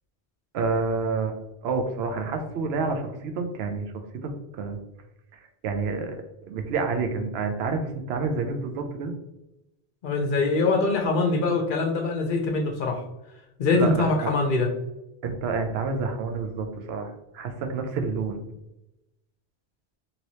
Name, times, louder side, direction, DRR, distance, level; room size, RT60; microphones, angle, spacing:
voice 1, 0.5-1.3 1.6-3.9 4.2-4.8 5.3-6.2 6.5-9.1 13.7-14.3 15.2-18.4, right 4 dB, 80° right, 5 dB, 0.8 m, -29 dB
voice 2, 10.0-13.0 13.6-14.7, left 3 dB, 60° left, 3 dB, 0.7 m, -23 dB
3.0 x 2.9 x 2.7 m, 0.91 s
omnidirectional pair, 1.0 m